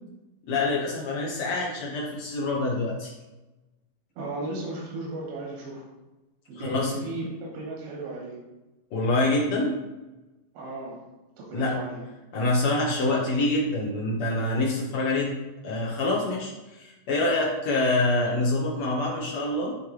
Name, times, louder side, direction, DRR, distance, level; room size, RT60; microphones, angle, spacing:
voice 1, 0.5-3.1 6.5-6.9 8.9-9.9 11.5-11.8 12.3-15.4 15.6-19.8, left 2 dB, 85° left, -3 dB, 1.2 m, -26 dB
voice 2, 4.2-5.8 6.5-8.4 10.5-11.0 11.4-12.0, right 2 dB, 90° right, -4 dB, 3.3 m, -35 dB
11.5 x 3.8 x 3.3 m, 1.1 s
omnidirectional pair, 4.1 m